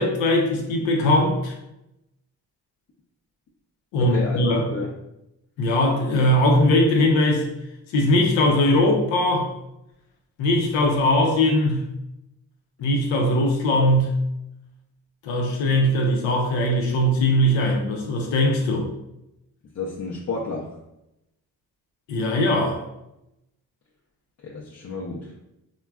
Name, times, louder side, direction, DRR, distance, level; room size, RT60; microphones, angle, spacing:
voice 1, 0.0-1.5 3.9-4.7 5.6-7.5 7.9-9.5 10.4-11.9 12.8-14.2 15.2-18.9 22.1-22.8, left 1 dB, 85° left, 1 dB, 0.7 m, -20 dB
voice 2, 4.0-4.4 4.7-4.9 19.7-20.7 24.4-25.3, left 4 dB, 40° left, -4 dB, 0.5 m, -31 dB
3.3 x 2.2 x 2.2 m, 0.87 s
supercardioid pair, 45°, 44 cm